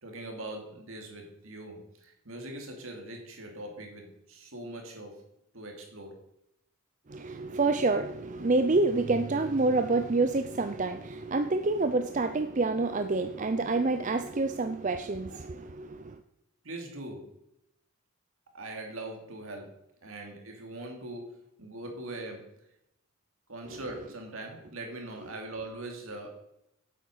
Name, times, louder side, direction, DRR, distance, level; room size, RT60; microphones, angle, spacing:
voice 1, 0.0-5.2 5.5-6.2 16.6-17.3 18.5-22.5 23.5-26.3, right 2 dB, 70° right, 2 dB, 2.6 m, -41 dB
voice 2, 7.1-16.0, right 3 dB, 35° right, 9 dB, 0.5 m, -27 dB
8.7 x 8.4 x 6.6 m, 0.81 s
head